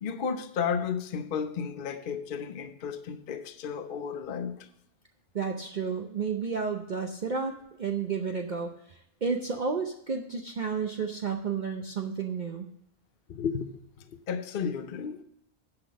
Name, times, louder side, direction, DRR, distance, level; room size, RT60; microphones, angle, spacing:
voice 1, 0.0-4.7 13.3-13.8 14.1-15.2, left 6 dB, 50° left, 0.8 m, -33 dB
voice 2, 5.3-12.7, right 5 dB, 45° right, 0.8 m, -32 dB
9.9 x 6.1 x 6.3 m
omnidirectional pair, 1.3 m